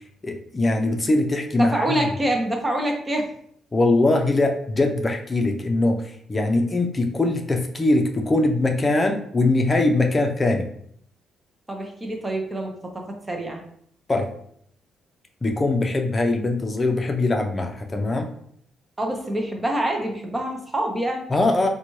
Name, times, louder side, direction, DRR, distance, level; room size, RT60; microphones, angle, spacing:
voice 1, 0.2-2.0 3.7-10.7 14.1-14.3 15.4-18.3 21.3-21.7, left 2 dB, 25° left, 3 dB, 0.6 m, -22 dB
voice 2, 1.6-3.3 11.7-13.6 19.0-21.2, right 1 dB, 20° right, 2 dB, 0.6 m, -26 dB
4.0 x 2.3 x 3.0 m, 0.66 s
cardioid pair, 90°, 0 cm